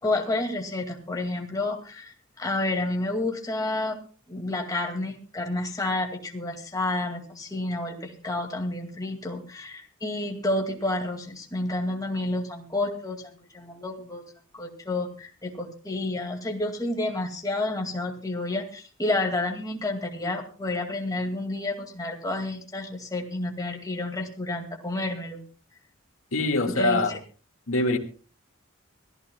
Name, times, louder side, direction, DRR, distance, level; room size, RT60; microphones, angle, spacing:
voice 1, 0.0-4.0 4.3-14.2 14.5-25.4 26.8-27.2, left 2 dB, 15° left, 2.2 m, -30 dB
voice 2, 26.3-27.1 27.7-28.0, left 2 dB, 85° left, 2.0 m, -23 dB
24.5 x 14.0 x 2.3 m
head